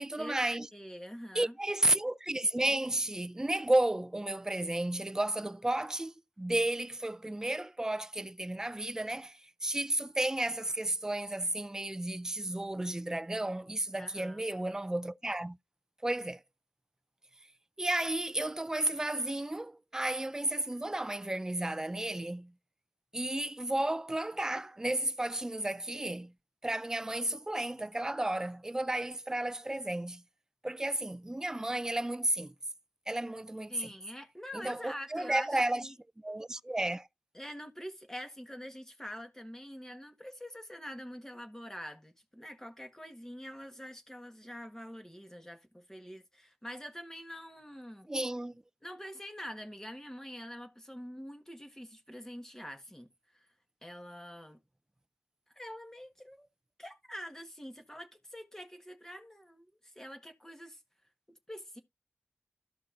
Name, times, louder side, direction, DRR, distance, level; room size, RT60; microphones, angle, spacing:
voice 1, 0.0-0.7 1.3-15.6 16.0-16.4 17.8-22.5 23.1-26.3 26.6-30.2 30.6-32.5 33.1-33.9 34.5-35.9 36.2-37.1 48.1-48.6, right 1 dB, 15° right, 0.4 m, -32 dB
voice 2, 0.7-1.6 13.9-14.5 33.7-35.9 37.3-48.1 48.8-53.5 53.8-54.6 55.5-56.5 56.8-60.8 61.3-61.8, equal, 10° left, 1.6 m, -45 dB
14.0 x 5.3 x 2.6 m
wide cardioid pair, 85°, 4 cm